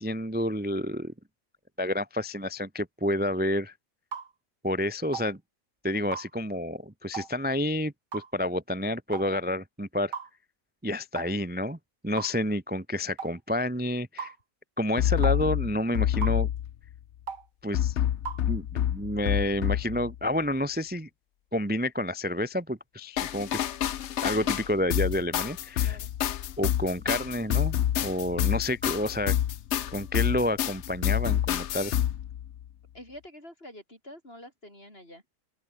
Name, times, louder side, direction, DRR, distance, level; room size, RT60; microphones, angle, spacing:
voice 1, 0.0-1.1 1.8-3.7 4.6-5.4 5.8-10.1 10.8-11.8 12.0-14.3 14.8-16.5 17.6-18.0 18.5-21.1 21.5-23.6 24.2-26.0 26.6-29.3 29.9-31.9, left 1 dB, 10° right, 0.5 m, -29 dB
sound 1, 4.1-4.3 5.1-5.3 6.1-6.3 7.1-7.3 8.1-8.3 9.1-9.3 10.1-10.3 11.2-11.3 12.2-12.4 13.2-13.3 14.2-14.4 15.2-15.4 16.2-16.4 17.3-17.5 18.3-18.4, right 6 dB, 75° right, 2.7 m, -36 dB
sound 2, 15.0-16.9 17.7-20.2 23.2-32.7, left 11 dB, 60° left, 0.7 m, -28 dB
voice 2, 32.9-35.2, left 1 dB, 30° left, 8.3 m, -47 dB
open air
omnidirectional pair, 1.9 m